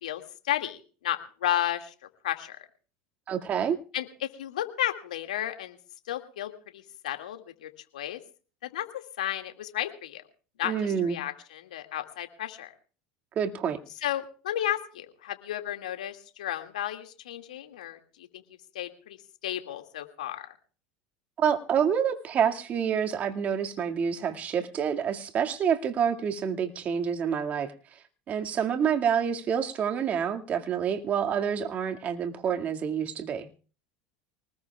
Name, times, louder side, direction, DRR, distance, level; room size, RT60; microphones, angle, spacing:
voice 1, 0.0-1.9 2.2-2.6 3.9-5.8 6.1-8.2 8.6-10.2 10.6-10.7 11.0-12.7 14.0-18.4 18.7-19.2 19.4-20.5, left 12 dB, 85° left, 2.1 m, -33 dB
voice 2, 3.3-3.8 10.6-11.2 13.4-13.8 21.4-27.7 28.3-33.5, right 7 dB, 40° right, 2.1 m, -27 dB
24.5 x 20.0 x 2.4 m
hypercardioid pair, 95°, 4 cm